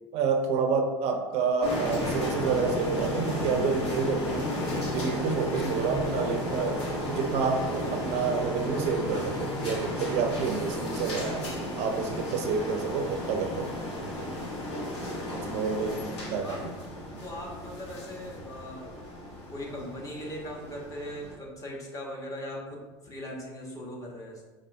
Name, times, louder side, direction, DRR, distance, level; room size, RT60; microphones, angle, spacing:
voice 1, 0.1-4.5 4.9-11.5 11.8-13.7 15.3-16.7, right 5 dB, 50° right, 5 dB, 0.5 m, -29 dB
sound 1, 1.6-21.3, left 1 dB, 75° left, 1.3 m, -33 dB
voice 2, 16.2-16.6 17.2-19.0 19.5-24.4, equal, 25° left, -2 dB, 1.4 m, -40 dB
5.2 x 3.1 x 2.7 m, 1.3 s
hypercardioid pair, 75°, 14 cm